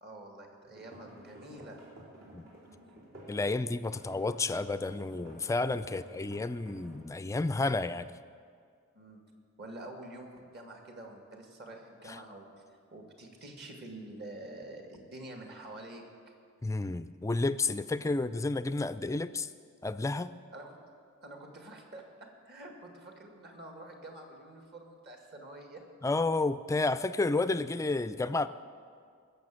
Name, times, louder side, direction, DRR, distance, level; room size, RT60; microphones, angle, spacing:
voice 1, 0.0-1.8 5.8-6.3 8.9-9.2 9.6-12.5 12.9-16.0 20.5-20.8 21.2-25.8, right 1 dB, 50° right, 2 dB, 2.0 m, -47 dB
sound 1, 0.6-3.4 3.9-7.0, right 1 dB, 70° right, 4.1 m, -53 dB
voice 2, 3.3-8.1 12.1-12.2 16.6-19.5 19.8-20.3 26.0-28.5, left 3 dB, 15° left, 13 dB, 0.3 m, -31 dB
19.5 x 7.0 x 7.6 m, 2.2 s
head